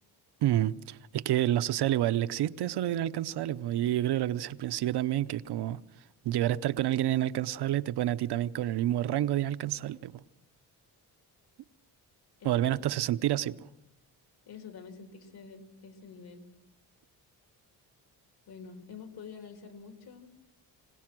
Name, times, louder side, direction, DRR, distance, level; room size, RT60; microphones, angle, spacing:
voice 1, 0.4-5.8 6.2-10.2 12.4-13.7, right 13 dB, 80° right, 0.8 m, -29 dB
voice 2, 12.4-12.8 14.5-16.5 18.5-20.3, left 5 dB, 70° left, 3.4 m, -47 dB
26.0 x 18.0 x 6.1 m
wide cardioid pair, 155°, 39 cm